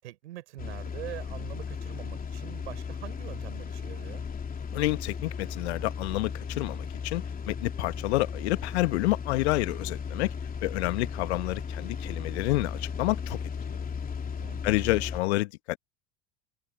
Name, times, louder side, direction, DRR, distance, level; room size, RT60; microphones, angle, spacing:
voice 1, 0.0-4.2 14.4-15.0, right 15 dB, 70° right, 5.8 m, -44 dB
sound 1, 0.6-15.2, left 6 dB, 25° left, 3.0 m, -36 dB
voice 2, 4.7-10.3 10.6-13.4 14.6-15.8, left 20 dB, 65° left, 1.7 m, -29 dB
figure-of-eight pair, 75°, 35 cm